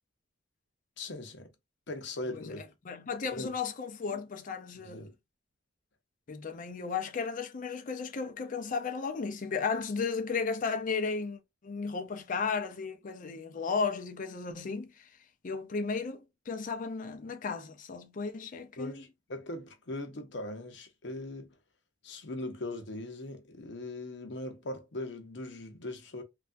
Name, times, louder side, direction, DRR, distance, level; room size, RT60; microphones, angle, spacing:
voice 1, 1.0-1.5 1.9-2.6 3.3-3.5 4.8-5.1 18.8-21.5 22.0-26.2, left 2 dB, 70° left, 0.8 m, -40 dB
voice 2, 2.9-5.1 6.3-15.1 15.4-19.0, left 5 dB, 45° left, 0.5 m, -34 dB
3.3 x 2.3 x 2.5 m
head